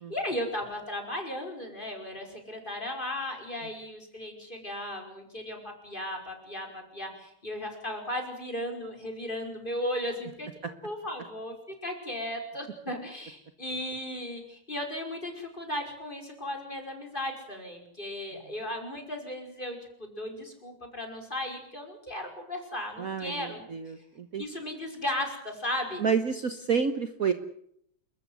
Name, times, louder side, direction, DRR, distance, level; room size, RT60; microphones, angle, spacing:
voice 1, 0.1-10.5 10.8-11.5 11.8-23.7 24.4-26.0, left 1 dB, 25° left, 3 dB, 5.6 m, -36 dB
voice 2, 23.0-24.4 26.0-27.3, right 6 dB, 50° right, 9 dB, 1.5 m, -29 dB
29.5 x 14.0 x 9.4 m, 0.70 s
omnidirectional pair, 2.2 m